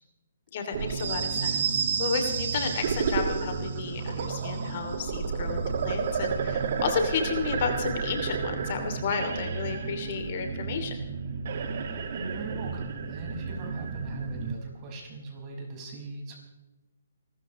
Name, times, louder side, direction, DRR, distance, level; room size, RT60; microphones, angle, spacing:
voice 1, 0.5-11.0, left 5 dB, 50° left, 5 dB, 2.8 m, -32 dB
sound 1, 0.7-14.5, right 6 dB, 55° right, 2.0 m, -31 dB
voice 2, 12.1-16.4, right 2 dB, 30° right, -1 dB, 5.7 m, -40 dB
29.0 x 13.5 x 3.2 m, 1.1 s
hypercardioid pair, 145°, 0 cm